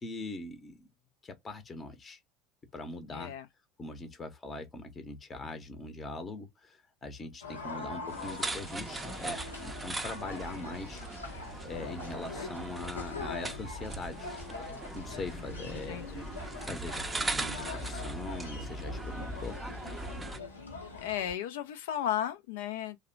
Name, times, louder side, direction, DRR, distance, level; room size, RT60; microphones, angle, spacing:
voice 1, 0.0-0.9 1.2-2.2 2.7-3.3 3.8-11.4 11.6-14.3 14.9-16.2 16.6-19.6, left 2 dB, 25° left, 0.7 m, -42 dB
voice 2, 3.1-3.5 15.3-16.3 21.0-23.0, left 10 dB, 70° left, 0.3 m, -35 dB
sound 1, 7.4-21.3, left 3 dB, 90° left, 0.7 m, -43 dB
sound 2, 8.1-20.4, right 2 dB, 15° right, 0.5 m, -39 dB
2.8 x 2.1 x 2.5 m
figure-of-eight pair, 75°, 0 cm